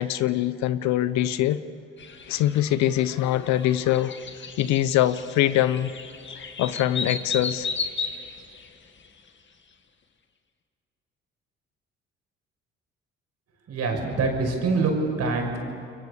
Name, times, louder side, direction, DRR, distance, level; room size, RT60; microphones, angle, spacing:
voice 1, 0.0-1.6 2.3-4.1 4.6-5.9 6.6-7.7, left 13 dB, 70° left, 14 dB, 1.0 m, -23 dB
sound 1, 2.0-9.3, left 5 dB, 40° left, 2.2 m, -35 dB
voice 2, 13.7-15.6, right 3 dB, 60° right, 2 dB, 6.4 m, -25 dB
29.0 x 22.5 x 6.9 m, 2.4 s
hypercardioid pair, 60°, 29 cm